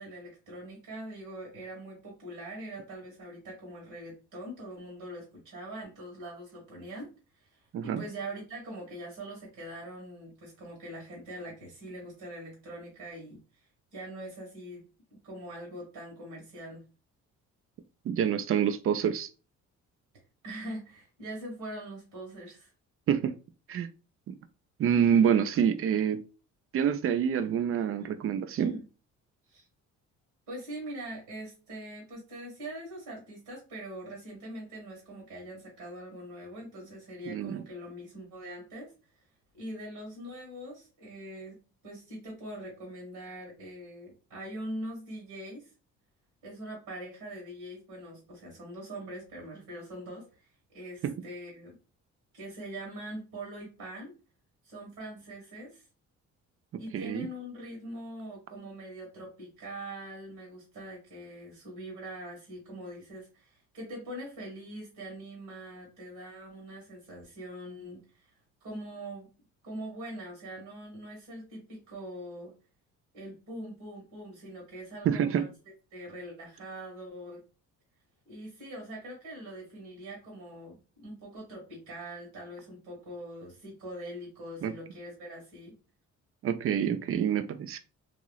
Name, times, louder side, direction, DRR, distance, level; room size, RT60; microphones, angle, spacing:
voice 1, 0.0-13.4 13.9-14.8 15.2-16.8 20.4-22.7 28.0-28.1 28.6-28.8 29.5-29.7 30.5-38.9 39.5-41.5 41.8-45.7 46.4-51.7 52.3-54.1 54.6-55.8 56.8-68.3 68.6-69.3 69.6-72.5 73.1-75.4 75.9-77.4 78.2-85.7, right 1 dB, 85° right, 1.6 m, -43 dB
voice 2, 18.0-19.3 23.1-23.3 23.7-23.9 24.3-24.4 24.8-26.2 26.7-28.8 37.3-37.6 51.0-51.1 56.7-57.3 75.0-75.5 84.6-84.7 86.4-87.8, right 8 dB, 45° right, 0.4 m, -27 dB
2.9 x 2.9 x 2.3 m
cardioid pair, 90°, 30 cm